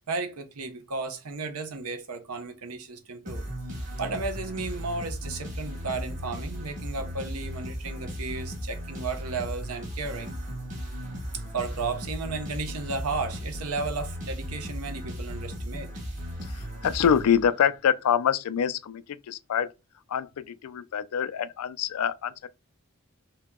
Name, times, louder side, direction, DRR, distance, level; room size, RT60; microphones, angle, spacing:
voice 1, 0.1-3.4 4.0-10.3 11.5-15.9, right 3 dB, 85° right, 0.8 m, -34 dB
sound 1, 3.2-17.8, equal, 35° right, 1.3 m, -36 dB
voice 2, 16.4-19.7 20.1-22.5, left 8 dB, 85° left, 0.4 m, -26 dB
2.8 x 2.8 x 3.6 m
head